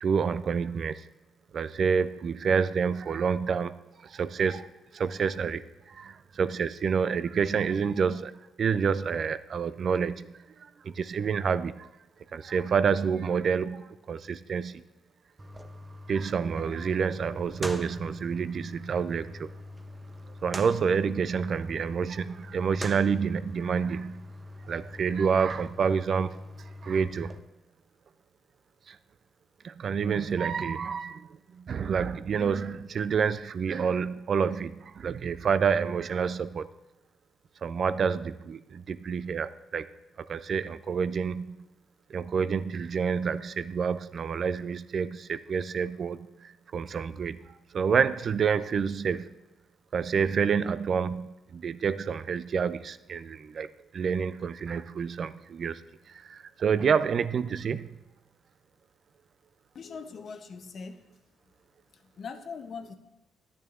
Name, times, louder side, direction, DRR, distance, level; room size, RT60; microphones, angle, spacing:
voice 1, 0.0-1.1 1.5-11.9 12.3-14.8 16.1-19.5 20.4-24.3 24.6-26.4 26.8-27.4 28.9-29.0 29.6-36.7 37.6-39.9 40.2-41.6 42.1-49.3 49.9-55.8 56.1-58.0, right 6 dB, 50° right, 15 dB, 0.3 m, -28 dB
sound 1, 15.4-27.4, equal, 20° right, 0.7 m, -43 dB
voice 2, 59.7-61.0 61.9-62.9, left 5 dB, 55° left, 8 dB, 0.7 m, -41 dB
10.5 x 9.4 x 2.5 m, 0.97 s
cardioid pair, 90°, 0 cm